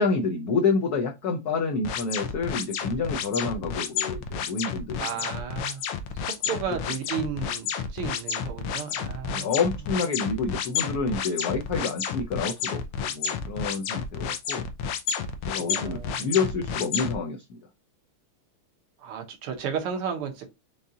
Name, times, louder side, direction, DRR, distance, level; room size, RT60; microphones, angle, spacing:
voice 1, 0.0-5.1 9.3-14.7 15.5-17.6, left 4 dB, 70° left, 0.9 m, -28 dB
sound 1, 1.8-17.1, left 7 dB, 85° left, 1.6 m, -30 dB
voice 2, 5.0-5.8 6.1-9.5 15.6-16.4 19.0-20.5, right 7 dB, 85° right, 2.1 m, -33 dB
5.5 x 3.5 x 2.7 m
omnidirectional pair, 2.4 m